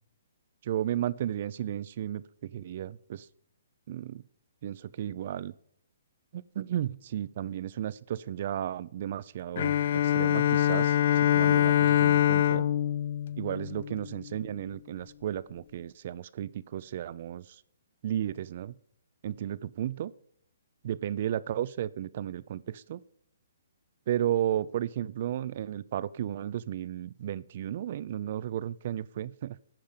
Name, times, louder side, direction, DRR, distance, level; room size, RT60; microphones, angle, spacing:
voice 1, 0.6-3.3 3.9-4.2 4.6-5.5 6.3-9.7 10.0-12.6 13.4-17.6 18.0-18.8 19.2-20.1 20.8-23.0 24.1-29.6, right 11 dB, 50° right, 19 dB, 0.5 m, -33 dB
Bowed string instrument, 9.6-14.3, left 11 dB, 55° left, 0.4 m, -24 dB
13.0 x 8.8 x 5.1 m, 0.68 s
hypercardioid pair, 140°, 0 cm